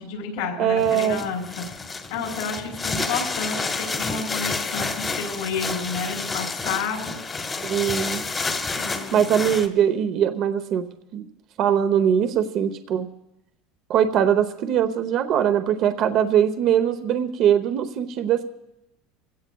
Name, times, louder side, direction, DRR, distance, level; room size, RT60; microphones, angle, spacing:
voice 1, 0.0-1.6 2.1-7.1 8.7-9.3, left 5 dB, 90° left, 1 dB, 4.0 m, -30 dB
voice 2, 0.6-1.2 7.6-8.2 9.1-11.3 11.6-13.1 13.9-18.4, right 9 dB, 45° right, 9 dB, 0.8 m, -21 dB
sound 1, 0.8-9.7, left 3 dB, 20° left, 1.1 m, -30 dB
25.0 x 17.0 x 2.3 m, 0.87 s
cardioid pair, 145°, 0 cm